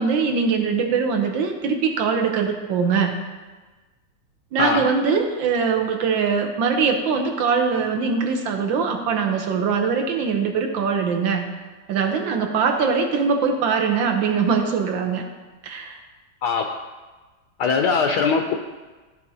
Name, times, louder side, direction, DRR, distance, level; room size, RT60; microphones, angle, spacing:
voice 1, 0.0-3.2 4.5-11.5 11.9-15.2 15.6-16.0, right 5 dB, 80° right, 4 dB, 1.6 m, -22 dB
voice 2, 16.4-16.7 17.6-18.5, left 5 dB, 70° left, 4 dB, 1.1 m, -21 dB
12.0 x 7.2 x 2.7 m, 1.3 s
omnidirectional pair, 2.1 m